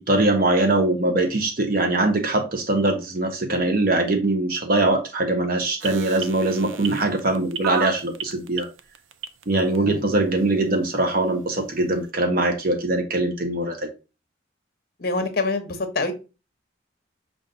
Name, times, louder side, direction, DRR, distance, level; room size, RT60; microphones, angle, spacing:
voice 1, 0.0-8.7 9.5-13.9, right 2 dB, 45° right, 0.6 m, -22 dB
sound 1, 5.8-9.8 10.4-10.5, right 7 dB, 85° right, 0.4 m, -31 dB
voice 2, 9.7-10.0 15.0-16.1, left 3 dB, 50° left, 0.8 m, -26 dB
5.4 x 2.4 x 3.7 m
head